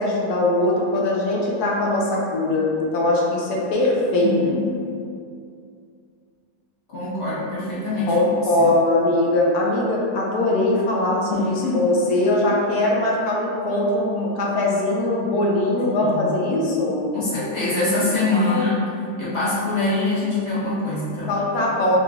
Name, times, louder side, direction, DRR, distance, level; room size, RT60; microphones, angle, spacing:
voice 1, 0.0-4.3 8.1-17.0 18.5-18.6 21.3-22.0, left 2 dB, 75° left, -3 dB, 1.2 m, -21 dB
voice 2, 4.1-4.8 6.9-8.2 8.6-8.7 11.3-12.0 12.3-12.4 15.8-16.4 17.1-18.8 19.2-21.4, left 2 dB, 50° left, -9 dB, 1.1 m, -24 dB
4.8 x 3.1 x 2.4 m, 2.4 s
omnidirectional pair, 1.7 m